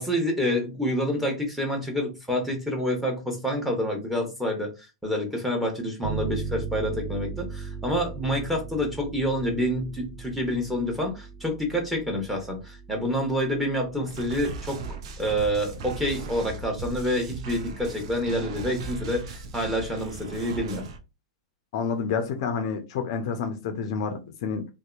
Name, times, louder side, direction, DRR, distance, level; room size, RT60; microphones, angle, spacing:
voice 1, 0.0-14.8 15.2-20.8, equal, 5° right, 1.0 m, -28 dB
sound 1, 6.0-15.3, right 5 dB, 20° right, 0.6 m, -38 dB
sound 2, 14.1-21.0, right 4 dB, 60° right, 0.6 m, -38 dB
voice 2, 21.7-24.7, left 6 dB, 55° left, 0.5 m, -29 dB
2.7 x 2.2 x 2.4 m
hypercardioid pair, 110°, 3 cm